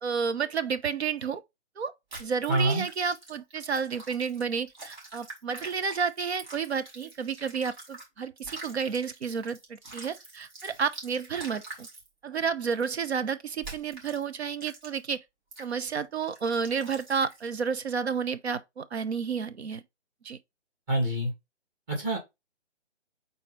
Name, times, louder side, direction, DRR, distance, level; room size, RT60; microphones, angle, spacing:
voice 1, 0.0-1.4 1.8-1.9 2.2-11.9 12.2-15.2 15.6-19.8 20.2-20.4, right 6 dB, 65° right, 0.9 m, -31 dB
sound 1, 2.1-8.1 8.4-12.1 12.7-13.1 13.6-14.2 14.6-15.1 15.5-15.7 16.2-17.5, right 2 dB, 40° right, 3.0 m, -46 dB
voice 2, 2.5-2.9 20.9-21.3 21.9-22.2, right 1 dB, 20° right, 2.4 m, -26 dB
4.5 x 4.2 x 5.1 m
hypercardioid pair, 165°, 35 cm